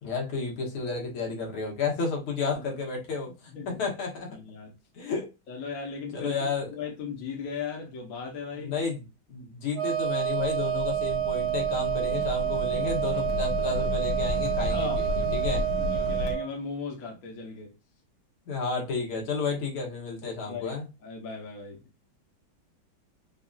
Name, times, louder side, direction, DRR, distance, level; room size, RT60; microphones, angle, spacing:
voice 1, 0.0-4.3 4.9-5.3 6.1-6.7 8.5-9.0 9.3-15.7 18.5-20.9, left 4 dB, 85° left, 2.1 m, -32 dB
voice 2, 3.5-3.9 4.3-4.7 5.5-8.8 14.7-17.7 20.2-20.7 21.0-21.8, left 5 dB, 50° left, 1.3 m, -37 dB
Wind instrument woodwind instrument, 9.7-16.5, right 12 dB, 75° right, 0.7 m, -28 dB
sound 1, 10.1-16.4, left 4 dB, 70° left, 1.5 m, -33 dB
5.5 x 2.6 x 2.3 m
omnidirectional pair, 2.2 m